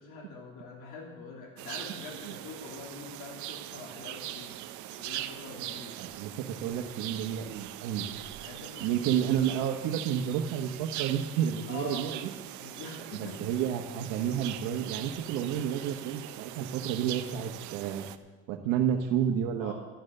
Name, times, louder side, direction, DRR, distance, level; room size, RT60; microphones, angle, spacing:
voice 1, 0.0-4.6 4.9-5.9 8.4-9.3 11.7-12.1 12.5-13.4 19.6-19.7, left 4 dB, 75° left, -1 dB, 3.3 m, -44 dB
sound 1, 1.6-18.2, right 14 dB, 65° right, 0.8 m, -41 dB
voice 2, 6.0-8.1 8.8-12.2 13.4-18.0 18.5-19.7, right 9 dB, 80° right, 2 dB, 1.2 m, -30 dB
12.5 x 11.5 x 6.6 m, 1.2 s
cardioid pair, 150°, 32 cm